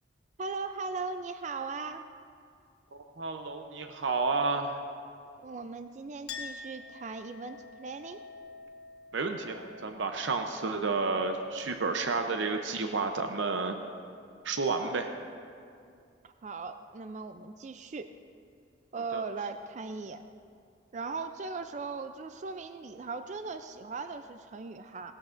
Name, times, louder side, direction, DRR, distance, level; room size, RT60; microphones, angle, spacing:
voice 1, 0.4-2.1 5.4-8.2 16.2-18.1 18.9-20.2 20.9-25.1, right 4 dB, 40° right, 9 dB, 0.4 m, -38 dB
voice 2, 2.9-4.8 9.1-13.8 14.4-15.1 19.1-19.2, right 4 dB, 80° right, 6 dB, 0.7 m, -31 dB
Chink clink, 6.3-13.3, left 5 dB, 60° left, 1.3 m, -48 dB
18.5 x 13.0 x 2.5 m, 2.4 s
head